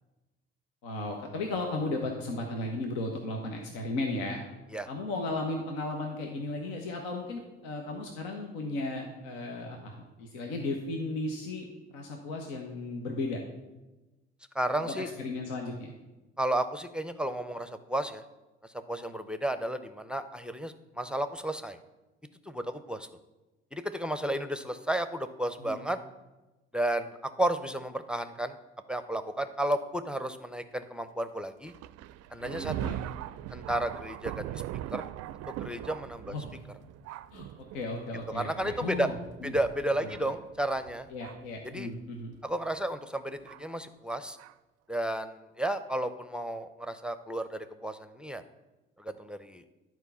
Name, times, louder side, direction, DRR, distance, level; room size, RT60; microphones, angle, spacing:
voice 1, 0.8-4.4 4.9-13.4 14.8-15.9 25.6-25.8 32.4-33.0 36.3-36.6 37.3-39.2 39.4-39.5 40.2-40.3 41.1-42.3, left 2 dB, 80° left, 1 dB, 1.1 m, -35 dB
voice 2, 14.5-15.1 16.4-18.2 18.9-21.8 22.5-23.1 23.7-26.0 26.7-28.6 28.9-31.7 32.3-32.9 33.5-34.6 34.9-35.0 35.5-36.3 38.3-39.1 39.4-41.1 41.7-41.9 42.4-44.4 44.9-48.4 49.0-49.6, right 1 dB, 5° right, 10 dB, 0.6 m, -32 dB
Thunder, 31.7-41.6 42.3-42.4 43.5-43.6 44.4-44.5, right 13 dB, 55° right, 0.4 m, -41 dB
10.5 x 4.6 x 5.6 m, 1.1 s
hypercardioid pair, 55°, 31 cm